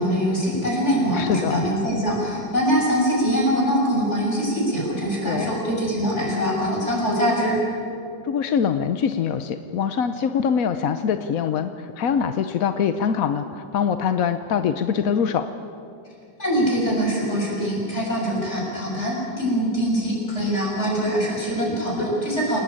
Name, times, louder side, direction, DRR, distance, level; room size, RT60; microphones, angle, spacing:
voice 1, 0.0-7.6 16.4-22.6, equal, 30° left, -3 dB, 7.5 m, -23 dB
voice 2, 1.1-1.6 5.2-5.5 8.2-15.5, left 7 dB, 60° left, 9 dB, 1.0 m, -23 dB
28.5 x 19.0 x 8.8 m, 2.6 s
omnidirectional pair, 2.2 m